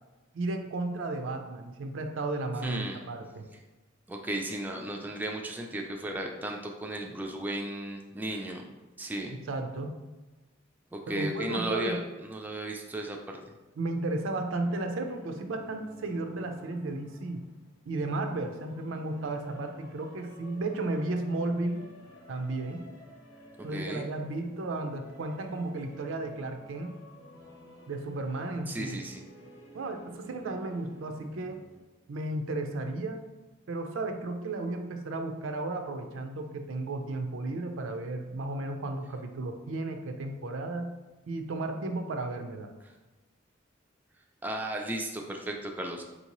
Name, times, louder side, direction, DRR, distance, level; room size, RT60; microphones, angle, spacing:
voice 1, 0.3-3.5 9.3-10.0 11.1-12.0 13.8-17.4 17.9-21.8 22.3-22.9 23.6-26.9 27.9-29.0 29.7-31.6 32.1-33.2 33.7-40.9 41.3-42.7, right 2 dB, 90° right, 5 dB, 0.4 m, -34 dB
voice 2, 2.6-3.0 4.1-8.6 9.0-9.3 10.9-13.4 23.7-24.1 28.7-29.2 44.4-46.0, right 1 dB, 10° right, 1 dB, 0.3 m, -35 dB
sound 1, 14.5-31.8, equal, 70° left, 0.8 m, -52 dB
4.4 x 2.7 x 2.9 m, 1.2 s
head